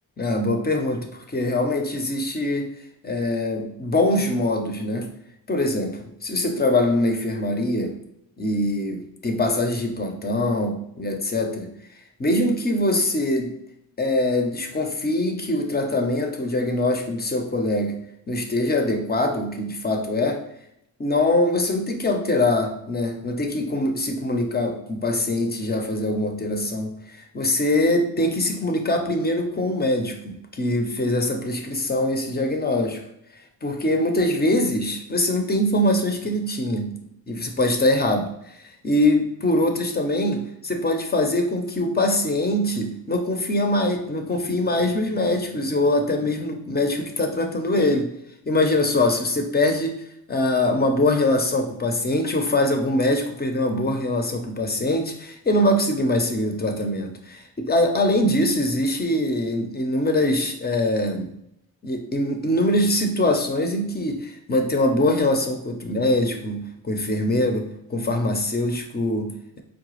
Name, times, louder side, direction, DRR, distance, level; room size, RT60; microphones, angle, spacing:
voice 1, 0.2-2.7 3.0-5.1 5.5-7.9 8.4-11.7 12.2-13.5 14.0-18.0 18.3-20.4 21.0-33.0 33.6-36.9 37.3-48.1 48.4-50.0 50.3-61.3 61.8-69.6, left 1 dB, 25° left, 4 dB, 0.6 m, -23 dB
4.7 x 2.2 x 3.0 m, 0.76 s
cardioid pair, 90°, 36 cm